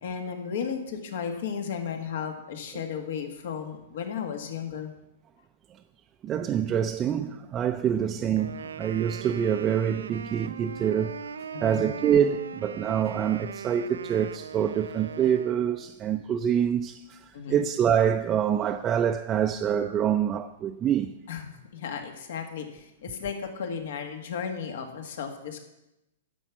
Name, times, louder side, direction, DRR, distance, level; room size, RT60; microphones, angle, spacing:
voice 1, 0.0-4.9 11.5-11.9 17.3-17.6 21.3-25.7, left 7 dB, 65° left, 1.7 m, -34 dB
voice 2, 6.2-11.2 11.6-21.1, right 9 dB, 25° right, 0.5 m, -26 dB
Wind instrument woodwind instrument, 8.4-16.0, right 7 dB, 80° right, 0.4 m, -40 dB
10.0 x 7.2 x 6.0 m
hypercardioid pair, 120°, 0 cm